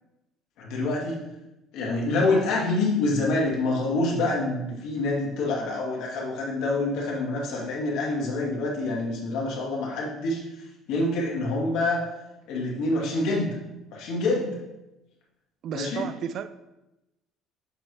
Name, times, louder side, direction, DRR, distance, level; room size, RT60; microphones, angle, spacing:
voice 1, 0.6-1.2 1.7-10.4 10.9-12.0 12.5-13.5 13.9-14.6 15.7-16.1, left 2 dB, 75° left, -2 dB, 1.8 m, -26 dB
voice 2, 15.6-16.5, right 8 dB, 50° right, 13 dB, 0.3 m, -32 dB
7.4 x 4.4 x 3.2 m, 0.95 s
cardioid pair, 135°, 0 cm